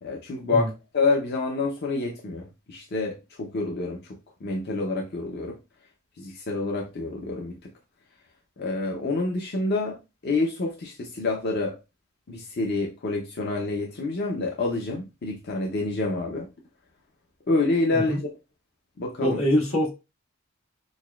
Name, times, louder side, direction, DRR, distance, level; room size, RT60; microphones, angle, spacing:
voice 1, 0.0-5.6 6.2-7.7 8.6-10.0 10.2-11.7 12.3-16.5 17.5-18.2 19.0-19.4, left 3 dB, 50° left, 1 dB, 0.6 m, -27 dB
voice 2, 19.2-19.9, equal, 90° left, -1 dB, 1.5 m, -24 dB
6.2 x 2.2 x 2.3 m, 0.26 s
head